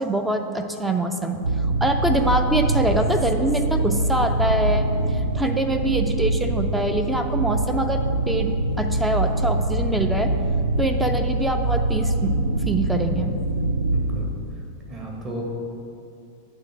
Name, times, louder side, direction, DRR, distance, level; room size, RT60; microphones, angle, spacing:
voice 1, 0.0-1.4 1.8-4.8 5.3-8.0 8.3-8.5 8.8-10.3 10.8-12.3 12.7-13.3, right 1 dB, 5° right, 6 dB, 0.4 m, -24 dB
sound 1, 1.4-14.3, right 2 dB, 75° right, 0.4 m, -24 dB
voice 2, 13.9-14.6 14.9-15.4, right 1 dB, 30° right, -3 dB, 1.7 m, -36 dB
8.9 x 3.6 x 5.0 m, 2.5 s
figure-of-eight pair, 90°, 0 cm